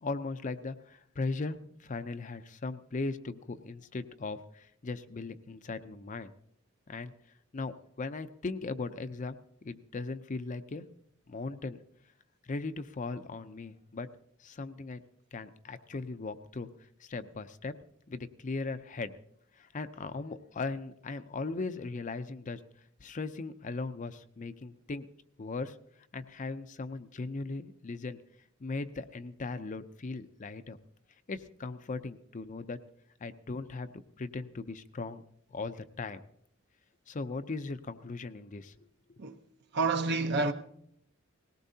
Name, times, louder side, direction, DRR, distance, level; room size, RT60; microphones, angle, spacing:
voice 1, 0.0-6.3 6.9-7.1 7.5-9.4 9.6-10.9 11.3-11.8 12.4-14.1 14.4-15.0 15.3-16.7 17.0-17.7 18.1-19.1 19.6-22.6 23.0-25.1 25.4-25.8 26.1-28.2 28.6-30.8 31.3-32.8 33.2-33.9 34.2-35.2 35.5-36.2 37.1-38.7, left 3 dB, 40° left, 0.5 m, -38 dB
voice 2, 39.7-40.5, right 3 dB, 55° right, 0.9 m, -28 dB
19.0 x 17.0 x 2.8 m
head